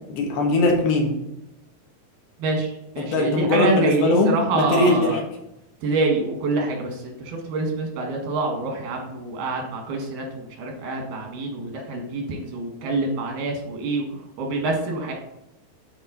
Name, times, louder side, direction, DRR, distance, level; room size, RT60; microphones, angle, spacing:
voice 1, 0.1-1.2 3.0-5.2, left 2 dB, 80° left, 1 dB, 3.5 m, -20 dB
voice 2, 2.4-5.2 5.8-15.1, right 2 dB, 90° right, 1 dB, 3.7 m, -26 dB
12.0 x 4.9 x 4.2 m, 0.86 s
omnidirectional pair, 4.3 m